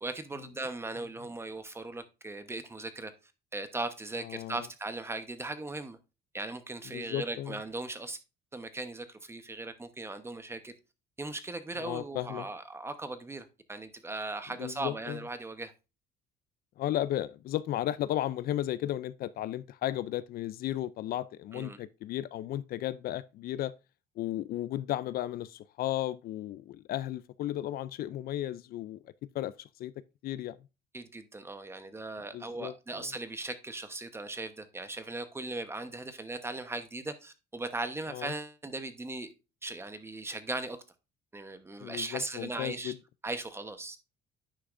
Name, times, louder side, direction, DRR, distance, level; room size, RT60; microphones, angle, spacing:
voice 1, 0.0-3.1 3.5-6.0 6.3-8.2 8.5-10.7 11.2-15.7 21.5-21.8 30.9-39.3 39.6-40.8 41.3-42.9 43.2-44.0, right 2 dB, 15° right, 1.0 m, -38 dB
voice 2, 4.2-4.6 6.9-7.6 11.8-12.5 14.6-15.2 16.8-23.7 24.2-29.0 29.3-29.9 30.2-30.6 32.3-33.1 38.1-38.3 41.8-43.0, left 13 dB, 65° left, 0.4 m, -34 dB
9.9 x 5.8 x 2.5 m
cardioid pair, 110°, 17 cm